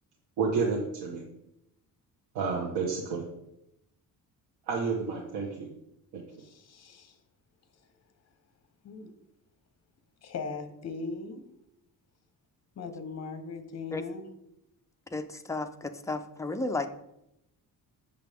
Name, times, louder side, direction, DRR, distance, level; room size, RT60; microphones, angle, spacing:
voice 1, 0.4-1.2 2.3-3.2 4.7-5.7 6.1-6.2, right 5 dB, 85° right, -2 dB, 1.3 m, -30 dB
voice 2, 6.4-7.2 8.8-9.1 10.2-11.4 12.8-14.2, left 4 dB, 40° left, 8 dB, 1.1 m, -39 dB
voice 3, 15.1-16.9, left 2 dB, 10° left, 6 dB, 0.4 m, -33 dB
8.0 x 6.7 x 3.5 m, 0.84 s
cardioid pair, 145°, 38 cm